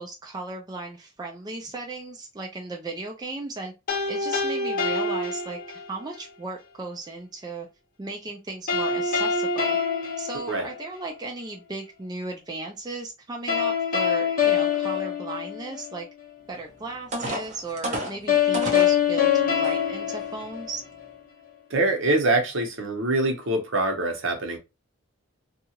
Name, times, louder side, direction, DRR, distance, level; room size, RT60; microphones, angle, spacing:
voice 1, 0.0-3.7 4.1-7.7 8.0-9.8 10.2-16.1 16.5-20.8, right 3 dB, 20° right, 0.3 m, -36 dB
sound 1, 3.9-6.0 8.7-11.1 13.5-16.0 18.3-21.1, left 7 dB, 40° left, 0.6 m, -25 dB
sound 2, 16.5-16.6 17.1-19.0 19.6-19.7 20.2-20.5, right 1 dB, 35° right, 0.7 m, -30 dB
voice 2, 21.7-24.6, right 2 dB, 70° right, 0.8 m, -24 dB
2.8 x 2.4 x 2.8 m
head